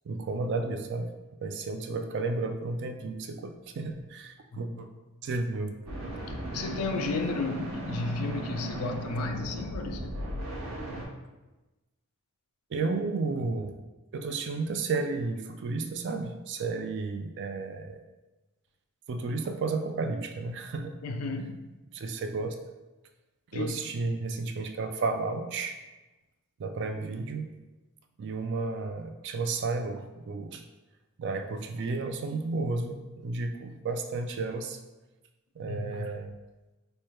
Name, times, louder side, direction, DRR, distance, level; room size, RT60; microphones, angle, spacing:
voice 1, 0.1-1.1 1.4-4.9 5.2-6.0 12.7-13.8 14.1-18.0 19.1-21.0 21.9-22.5 23.5-25.8 26.6-27.5 28.2-30.6 31.2-34.8 35.6-36.3, right 3 dB, 50° right, 7 dB, 0.3 m, -32 dB
sound 1, 5.9-11.1, right 1 dB, 70° right, 0.9 m, -36 dB
voice 2, 6.5-10.1 21.0-21.7 23.5-23.8 35.7-36.1, left 3 dB, 75° left, 5 dB, 0.4 m, -33 dB
3.3 x 2.2 x 4.3 m, 1.1 s
head